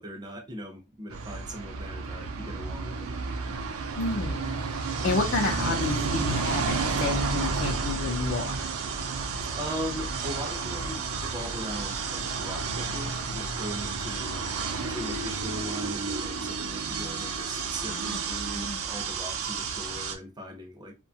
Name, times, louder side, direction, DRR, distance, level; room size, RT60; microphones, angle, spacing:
voice 1, 0.0-3.1 9.6-20.9, equal, 20° right, 0.5 m, -39 dB
sound 1, 1.1-20.1, right 4 dB, 70° right, 0.5 m, -31 dB
voice 2, 4.0-4.7 5.0-8.7 17.9-18.2 18.5-18.8, left 3 dB, 55° left, 0.5 m, -30 dB
2.7 x 2.2 x 2.7 m
head